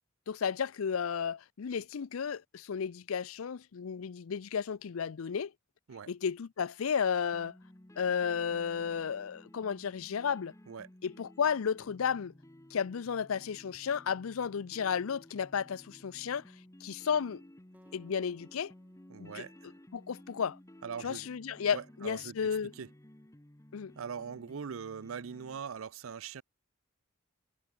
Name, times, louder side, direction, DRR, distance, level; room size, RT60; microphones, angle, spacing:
voice 1, 0.3-5.5 6.1-7.5 8.0-10.5 11.0-12.3 12.7-16.4 16.8-17.4 17.9-18.7 19.2-19.4 19.9-20.6 21.0-22.7 23.7-23.9, left 7 dB, 85° left, 0.5 m, -33 dB
sound 1, 7.3-25.6, left 1 dB, 15° left, 1.1 m, -56 dB
Acoustic guitar, 17.7-21.0, equal, 10° right, 2.3 m, -66 dB
voice 2, 19.1-19.5 20.8-21.3 21.7-22.9 24.0-26.4, right 6 dB, 75° right, 0.5 m, -42 dB
head